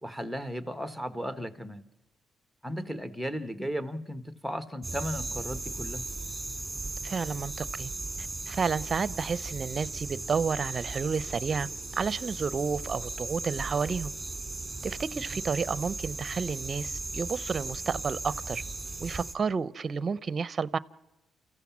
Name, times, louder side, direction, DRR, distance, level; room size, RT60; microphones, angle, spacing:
voice 1, 0.0-1.8 2.6-6.0, equal, ahead, 1.3 m, -35 dB
sound 1, 4.8-19.3, right 3 dB, 15° right, 2.3 m, -37 dB
voice 2, 7.0-7.9 8.2-14.1 14.8-18.6 19.0-20.8, right 5 dB, 40° right, 0.7 m, -31 dB
29.0 x 14.5 x 7.3 m
cardioid pair, 90°, 0 cm